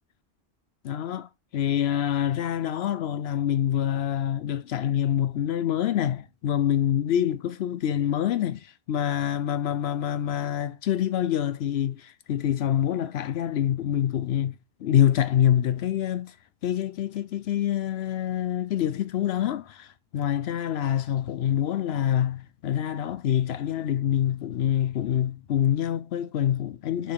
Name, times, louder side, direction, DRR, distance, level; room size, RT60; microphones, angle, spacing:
voice 1, 0.8-16.4 16.6-27.1, left 10 dB, 80° left, 0.8 m, -26 dB
7.0 x 4.9 x 5.7 m
omnidirectional pair, 1.1 m